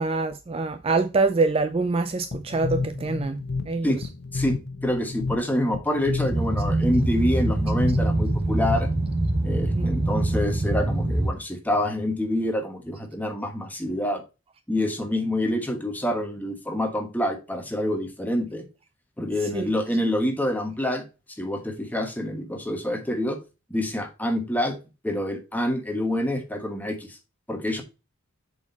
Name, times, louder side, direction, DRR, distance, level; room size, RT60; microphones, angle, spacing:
voice 1, 0.0-3.4 3.7-3.9 9.7-10.0 19.5-19.7, right 3 dB, 25° right, 0.4 m, -25 dB
sound 1, 2.3-9.2, left 4 dB, 55° left, 0.8 m, -31 dB
voice 2, 4.3-8.9 9.4-14.2 14.7-18.6 19.2-21.0 21.4-23.4 23.7-24.8 25.0-27.2 27.5-27.8, left 1 dB, 10° left, 1.2 m, -27 dB
Boat Water vehicle, 6.3-11.3, right 2 dB, 10° right, 3.6 m, -24 dB
7.3 x 4.5 x 4.0 m
head